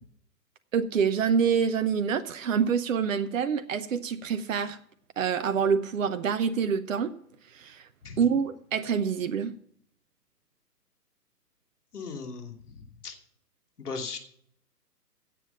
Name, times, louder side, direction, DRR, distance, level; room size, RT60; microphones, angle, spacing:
voice 1, 0.7-4.8 5.2-7.1 7.5-7.9 8.2-9.5, right 6 dB, 50° right, 11 dB, 0.9 m, -26 dB
voice 2, 11.9-13.2 13.8-14.2, left 4 dB, 65° left, 3 dB, 3.0 m, -38 dB
16.5 x 7.8 x 5.7 m, 0.67 s
figure-of-eight pair, 130°, 49 cm